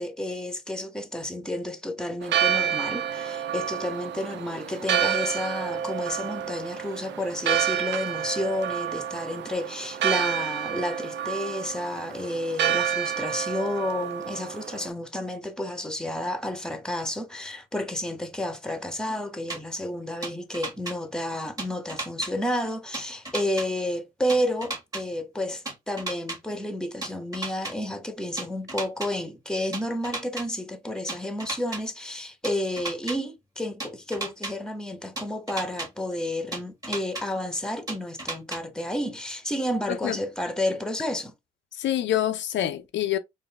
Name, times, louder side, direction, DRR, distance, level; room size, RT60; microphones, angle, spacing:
voice 1, 0.0-41.3, left 1 dB, 5° left, 0.9 m, -31 dB
Church bell, 2.2-14.9, right 9 dB, 65° right, 0.5 m, -29 dB
sound 1, 19.5-19.6 20.2-20.9 21.6-22.3 22.9-23.7 24.3-25.0 25.7-26.4 27.0-27.7 28.4-29.1 29.7-30.4 31.1-31.8 32.4-33.2 33.8-34.5 35.2-35.9 36.5-37.2 37.9-38.6, right 2 dB, 20° right, 1.6 m, -33 dB
voice 2, 41.7-43.2, left 11 dB, 70° left, 0.6 m, -26 dB
4.0 x 2.6 x 3.3 m
cardioid pair, 90°, 20 cm